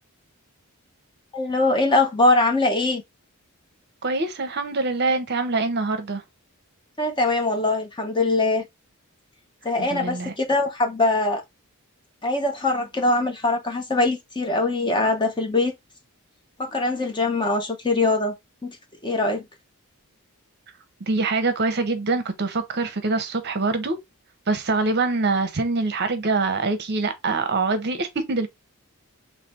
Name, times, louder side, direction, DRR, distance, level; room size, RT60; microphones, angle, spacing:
voice 1, 1.3-3.0 7.0-8.6 9.6-11.4 12.2-15.7 16.6-18.3 18.6-18.8 19.0-19.5, left 2 dB, 20° left, 0.8 m, -22 dB
voice 2, 4.0-6.2 9.8-10.3 21.0-24.0 24.5-28.5, right 3 dB, 50° right, 0.8 m, -24 dB
3.3 x 3.3 x 4.2 m
head